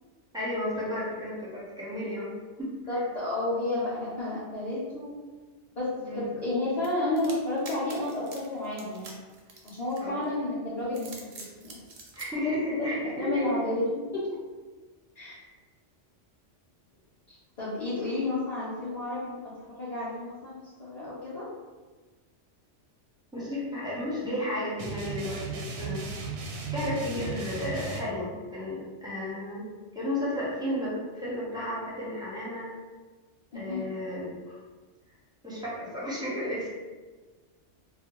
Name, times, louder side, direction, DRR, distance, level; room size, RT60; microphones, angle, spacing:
voice 1, 0.3-2.3 2.6-3.0 6.0-6.3 10.0-10.2 12.1-13.5 23.3-26.1 26.7-29.7 29.9-32.7 33.5-34.6 35.4-36.7, left 1 dB, 5° right, -8 dB, 0.3 m, -33 dB
voice 2, 2.9-5.1 5.8-9.2 9.6-11.8 12.4-14.3 15.1-15.4 17.3-19.5 19.8-21.5 27.0-27.3 33.5-33.8, left 2 dB, 45° left, -9 dB, 0.5 m, -31 dB
sound 1, 6.8-10.3 10.8-12.3, right 3 dB, 60° right, 0.5 m, -46 dB
sound 2, 24.8-28.0, right 4 dB, 85° right, 0.9 m, -35 dB
2.4 x 2.1 x 2.9 m, 1.3 s
omnidirectional pair, 1.2 m